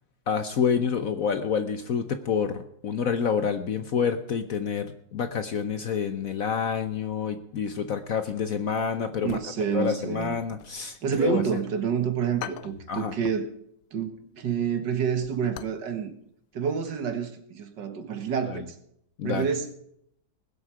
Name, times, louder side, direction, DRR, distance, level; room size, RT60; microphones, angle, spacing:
voice 1, 0.3-9.4 9.7-11.4 12.9-13.1 19.2-19.5, left 7 dB, 55° left, 10 dB, 1.1 m, -28 dB
sound 1, 9.1-9.9 10.2-11.6 12.0-12.1 12.4-13.5 13.8-14.0 14.4-15.9 16.1-16.2 16.7-17.0 17.2-17.3, left 12 dB, 80° left, 1.4 m, -42 dB
voice 2, 9.2-10.4 10.8-13.5 13.9-16.1 16.5-18.8 19.2-19.7, right 7 dB, 65° right, 8 dB, 2.0 m, -28 dB
20.0 x 8.1 x 4.9 m, 0.72 s
omnidirectional pair, 2.1 m